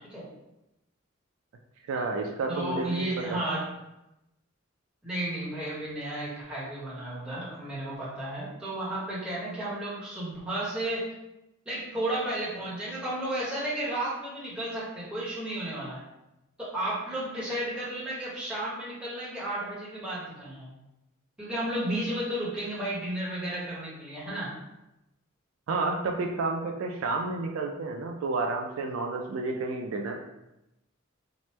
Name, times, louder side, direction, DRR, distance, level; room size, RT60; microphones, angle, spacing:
voice 1, 1.9-3.1 3.3-3.4 25.7-30.2, right 3 dB, 70° right, 2 dB, 0.3 m, -30 dB
voice 2, 2.5-3.6 5.0-11.0 11.6-16.0 16.6-20.7 21.4-24.5, right 1 dB, 5° right, -9 dB, 1.0 m, -33 dB
3.0 x 2.1 x 3.1 m, 0.92 s
head